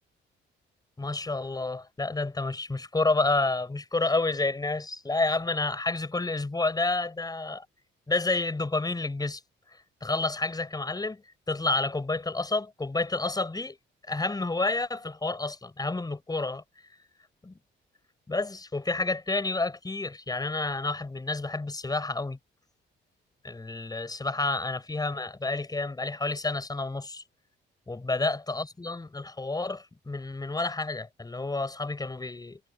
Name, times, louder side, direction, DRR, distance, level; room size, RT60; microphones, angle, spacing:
voice 1, 1.0-7.7 8.1-9.4 10.0-11.2 11.5-13.8 14.1-16.6 17.4-17.5 18.3-22.4 23.4-27.2 27.9-32.6, left 3 dB, 20° left, 5.8 m, -29 dB
cardioid pair, 90°, 20 cm